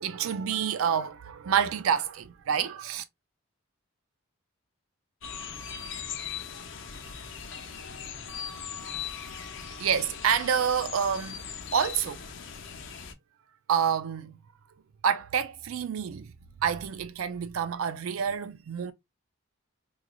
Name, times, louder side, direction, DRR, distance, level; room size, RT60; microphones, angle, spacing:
voice 1, 0.0-3.0 9.8-11.4 11.7-12.2 13.7-14.4 15.0-16.3 16.6-18.9, right 7 dB, 90° right, 0.4 m, -28 dB
sound 1, 5.2-13.1, left 7 dB, 60° left, 0.7 m, -39 dB
3.7 x 3.1 x 2.3 m
head